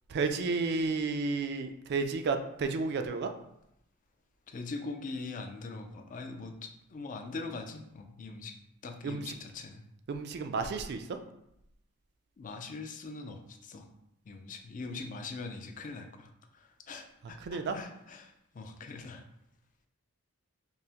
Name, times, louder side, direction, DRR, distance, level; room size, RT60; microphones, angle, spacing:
voice 1, 0.1-3.3 9.0-9.4 10.1-11.1 17.4-17.8, right 4 dB, 50° right, 7 dB, 0.3 m, -32 dB
voice 2, 4.5-8.5 8.8-9.8 12.4-13.8 14.3-16.3 16.9-19.2, left 3 dB, 35° left, 5 dB, 0.4 m, -42 dB
5.4 x 2.1 x 2.8 m, 0.80 s
head